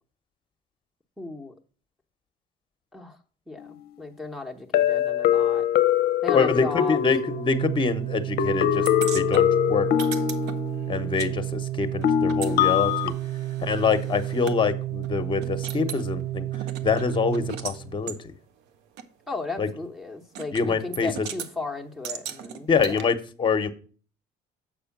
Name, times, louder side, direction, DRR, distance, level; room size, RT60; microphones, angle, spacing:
voice 1, 1.2-1.5 2.9-3.2 3.5-5.6 6.2-7.1 19.3-22.9, left 3 dB, ahead, 1 dB, 1.0 m, -35 dB
sound 1, 3.6-3.7 4.7-7.9 8.4-11.0 12.0-13.1, left 11 dB, 65° left, 0.6 m, -23 dB
voice 2, 6.3-8.9 9.1-9.9 10.9-13.1 13.6-16.5 16.8-18.1 19.6-19.7 20.5-21.3 22.7-23.7, left 5 dB, 30° left, 10 dB, 1.0 m, -25 dB
Organ, 7.2-18.1, right 15 dB, 45° right, 0.5 m, -31 dB
sound 2, 8.9-11.3 11.6-14.6 15.0-15.1 15.4-16.1 16.5-17.8 18.1-18.2 19.0-19.1 20.4-20.7 20.9-21.5 22.0-23.0, right 8 dB, 85° right, 0.8 m, -38 dB
7.3 x 4.8 x 5.9 m, 0.40 s
cardioid pair, 110°, 17 cm